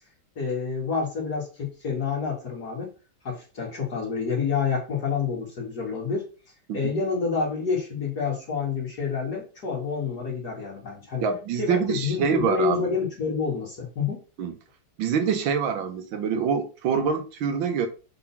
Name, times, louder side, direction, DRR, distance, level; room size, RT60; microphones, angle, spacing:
voice 1, 0.4-2.9 3.2-6.3 6.7-11.2 11.6-14.2, left 5 dB, 55° left, 2.6 m, -28 dB
voice 2, 11.2-12.9 14.4-14.5 15.0-17.9, right 6 dB, 90° right, 1.7 m, -25 dB
5.4 x 3.9 x 5.8 m
omnidirectional pair, 2.1 m